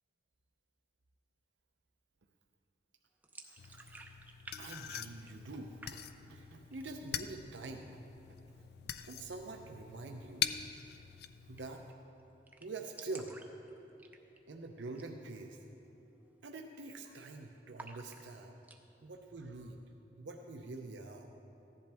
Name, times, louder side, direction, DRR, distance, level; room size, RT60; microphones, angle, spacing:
sound 1, 3.2-4.6 4.8-5.5 5.8-6.4 6.7-7.2 7.6-7.7 8.0-8.6 10.3-10.5 10.8-10.9 11.1-11.2 11.6-11.9 12.2-12.3 12.5-14.5 14.9-15.1 15.5-15.6 16.1-16.4 16.7-17.3 17.7-18.8, right 2 dB, 10° right, 0.5 m, -53 dB
voice 1, 3.4-4.0 4.6-8.0 9.0-10.4 11.4-11.8 12.6-13.3 14.5-15.6 16.4-18.6 19.0-19.8 20.2-21.3, right 3 dB, 85° right, 3 dB, 0.6 m, -46 dB
sound 2, 3.6-11.9, left 9 dB, 60° left, 0.4 m, -44 dB
15.0 x 11.0 x 3.4 m, 2.9 s
head